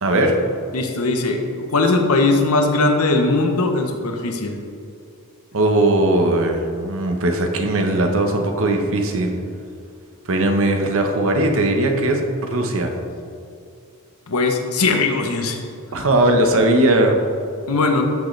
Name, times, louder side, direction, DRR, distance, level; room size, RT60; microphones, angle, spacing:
voice 1, 0.0-0.3 5.5-9.3 10.3-12.9 15.9-17.2, right 1 dB, 65° right, 3 dB, 1.1 m, -18 dB
voice 2, 0.7-1.4 1.7-4.5 14.3-15.6 16.0-16.1 17.7-18.0, left 3 dB, 70° left, 3 dB, 1.0 m, -19 dB
13.5 x 6.5 x 3.3 m, 2.4 s
head